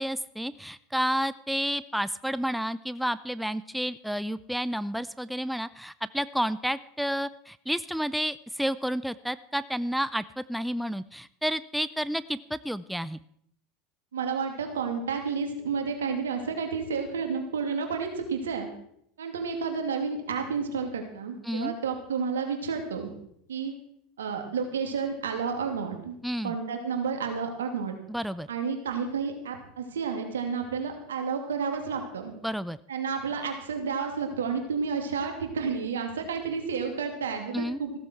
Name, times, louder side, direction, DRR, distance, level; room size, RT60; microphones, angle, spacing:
voice 1, 0.0-13.2 21.4-21.7 26.2-26.5 28.1-28.5 32.4-32.8 37.5-37.8, equal, ahead, 16 dB, 0.5 m, -30 dB
voice 2, 14.1-18.7 19.2-23.1 23.5-23.7 24.2-26.2 26.4-27.9 28.5-32.3 32.9-37.9, right 5 dB, 80° right, 4 dB, 2.7 m, -31 dB
15.5 x 13.5 x 4.6 m, 0.70 s
hypercardioid pair, 80°, 0 cm